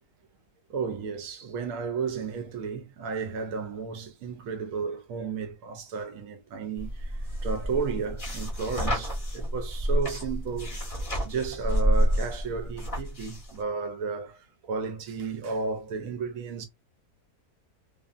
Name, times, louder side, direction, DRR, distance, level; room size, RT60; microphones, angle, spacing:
voice 1, 0.7-16.7, right 5 dB, 70° right, 0.9 m, -33 dB
sound 1, 6.8-13.6, equal, 30° left, 0.7 m, -29 dB
2.5 x 2.5 x 2.4 m
omnidirectional pair, 1.7 m